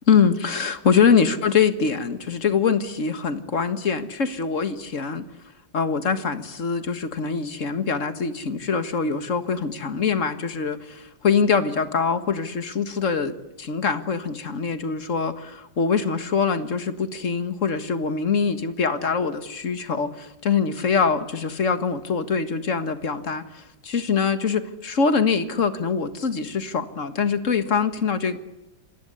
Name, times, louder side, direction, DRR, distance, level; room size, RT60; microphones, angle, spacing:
voice 1, 0.1-5.2 5.7-28.4, left 6 dB, 45° left, 10 dB, 1.9 m, -23 dB
26.5 x 19.5 x 8.1 m, 0.94 s
omnidirectional pair, 1.9 m